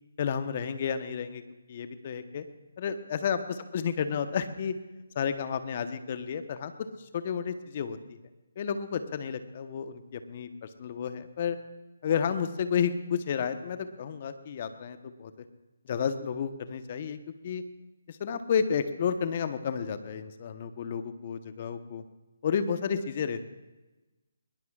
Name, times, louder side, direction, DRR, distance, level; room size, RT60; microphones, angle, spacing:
voice 1, 0.2-1.4 1.7-2.4 2.8-3.4 3.7-4.7 5.1-6.9 7.1-8.0 8.6-11.6 12.0-15.3 15.9-17.2 17.4-17.6 18.1-22.0 22.4-23.4, left 7 dB, 40° left, 10 dB, 1.1 m, -31 dB
22.0 x 21.0 x 2.5 m, 1.1 s
figure-of-eight pair, 145°, 0 cm